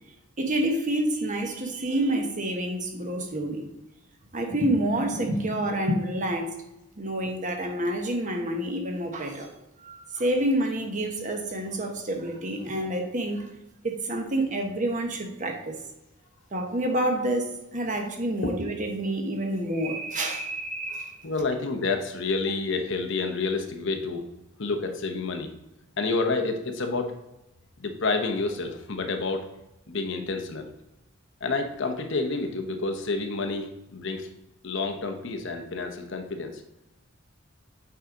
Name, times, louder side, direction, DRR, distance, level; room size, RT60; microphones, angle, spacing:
voice 1, 0.4-3.7 4.3-6.5 7.0-9.5 9.8-13.5 13.8-15.8 16.5-21.2, right 1 dB, 40° right, 3 dB, 1.1 m, -28 dB
voice 2, 21.2-24.3 24.6-25.5 26.0-27.2 27.8-29.4 29.9-30.7 31.4-34.3 34.6-36.6, left 3 dB, 60° left, 5 dB, 0.9 m, -29 dB
8.4 x 4.9 x 3.8 m, 0.93 s
head